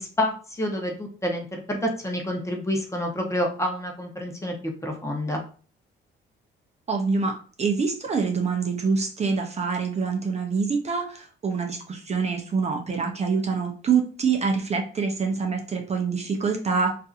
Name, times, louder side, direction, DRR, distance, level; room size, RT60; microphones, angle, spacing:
voice 1, 0.0-4.5 4.8-5.4, left 1 dB, 15° left, 1 dB, 0.7 m, -28 dB
voice 2, 6.9-16.9, right 5 dB, 35° right, 2 dB, 0.5 m, -25 dB
2.6 x 2.5 x 2.4 m, 0.40 s
cardioid pair, 90°, 20 cm